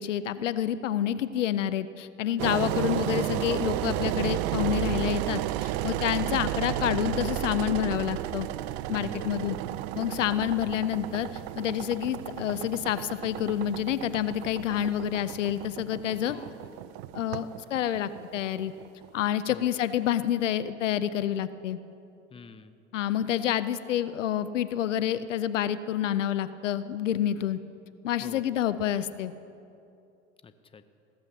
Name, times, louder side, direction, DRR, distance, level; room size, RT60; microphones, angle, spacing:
voice 1, 0.0-8.5 8.9-9.6 10.0-11.3 11.6-16.4 17.1-18.7 19.1-21.8 22.9-27.6 28.0-29.3, left 10 dB, 90° left, 14 dB, 0.5 m, -28 dB
Engine, 2.4-19.3, right 14 dB, 60° right, 0.5 m, -33 dB
voice 2, 9.1-9.8 16.3-16.8 19.5-19.8 22.3-22.8 28.2-28.8 30.4-30.9, left 5 dB, 15° left, 11 dB, 0.7 m, -48 dB
16.0 x 7.7 x 6.9 m, 2.6 s
hypercardioid pair, 85°, 36 cm